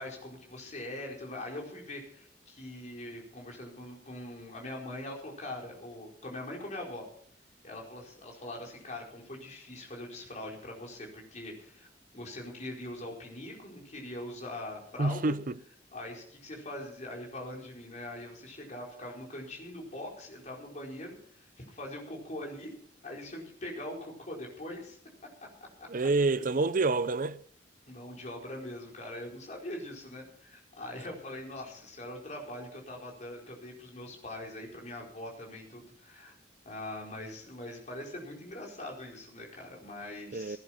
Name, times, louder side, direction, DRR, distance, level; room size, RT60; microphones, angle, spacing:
voice 1, 0.0-7.0 7.6-11.9 12.1-15.4 15.9-22.7 23.0-25.0 25.8-26.5 27.9-36.3 36.6-40.6, left 1 dB, 40° left, 4.8 m, -42 dB
voice 2, 15.0-15.6 25.9-27.4 40.3-40.6, right 3 dB, 50° right, 0.6 m, -27 dB
16.5 x 10.5 x 5.8 m
head